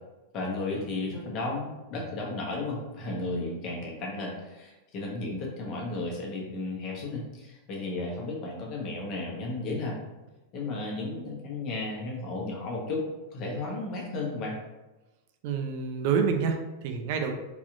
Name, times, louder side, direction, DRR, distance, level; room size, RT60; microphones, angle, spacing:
voice 1, 0.3-10.0 10.5-13.0 13.3-14.6, left 2 dB, 45° left, -1 dB, 1.1 m, -34 dB
voice 2, 15.4-17.3, right 6 dB, 60° right, 5 dB, 0.5 m, -28 dB
4.1 x 2.8 x 2.5 m, 1.1 s
hypercardioid pair, 110°, 0 cm